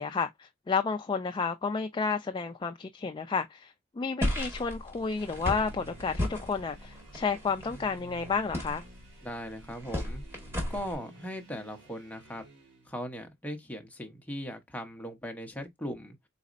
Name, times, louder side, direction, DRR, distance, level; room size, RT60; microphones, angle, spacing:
voice 1, 0.0-8.8, left 5 dB, 25° left, 0.3 m, -31 dB
sound 1, 4.2-11.0, left 1 dB, 10° right, 1.7 m, -35 dB
sound 2, 5.1-12.9, right 2 dB, 60° right, 1.9 m, -53 dB
voice 2, 9.2-10.2 10.7-12.4 12.9-16.2, equal, 10° left, 0.8 m, -39 dB
4.1 x 4.0 x 2.5 m
head